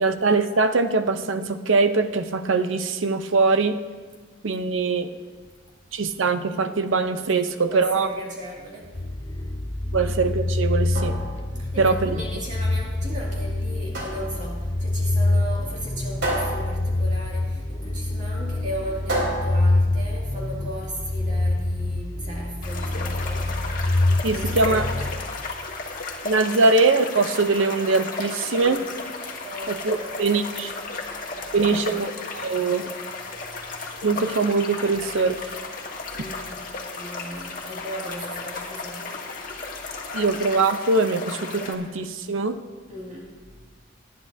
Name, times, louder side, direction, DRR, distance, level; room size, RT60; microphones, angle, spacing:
voice 1, 0.0-3.8 4.4-5.1 5.9-8.1 9.9-11.2 11.8-12.2 24.2-24.8 26.2-28.8 29.7-30.7 31.5-32.1 32.3-32.9 34.0-35.5 40.1-42.6, right 3 dB, 85° right, 9 dB, 0.7 m, -22 dB
voice 2, 7.3-8.9 11.6-23.6 24.3-25.2 26.5-26.6 28.5-28.8 29.4-30.2 31.4-32.0 36.1-36.7 37.0-39.2 42.9-43.4, equal, 40° right, -4 dB, 2.3 m, -36 dB
sound 1, 8.9-25.8, left 2 dB, 20° left, 0.5 m, -26 dB
sound 2, 11.0-20.7, right 1 dB, 65° right, 3.9 m, -33 dB
sound 3, 22.6-41.7, left 3 dB, 45° left, 1.5 m, -34 dB
19.0 x 11.0 x 2.7 m, 1.4 s
head